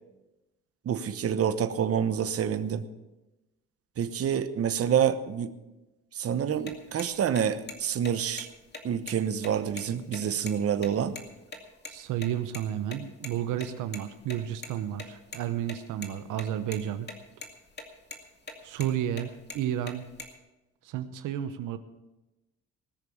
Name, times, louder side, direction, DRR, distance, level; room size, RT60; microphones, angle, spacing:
voice 1, 0.9-2.8 4.0-5.5 6.1-8.5 8.8-11.1, right 8 dB, 50° right, 11 dB, 1.0 m, -27 dB
sound 1, 6.5-11.6 11.8-11.9 12.2-12.3 12.5-12.6 12.9-13.0 13.2-13.3 13.6-14.7 15.0-15.4 15.7-16.4 16.7-17.1 17.4-17.8 18.1-18.2 18.5-18.9 19.2-20.3, left 3 dB, 35° left, 2.2 m, -41 dB
voice 2, 11.9-17.1 18.6-20.1 20.8-21.8, right 11 dB, 85° right, 10 dB, 0.9 m, -32 dB
19.5 x 6.8 x 7.1 m, 1.0 s
cardioid pair, 90°, 30 cm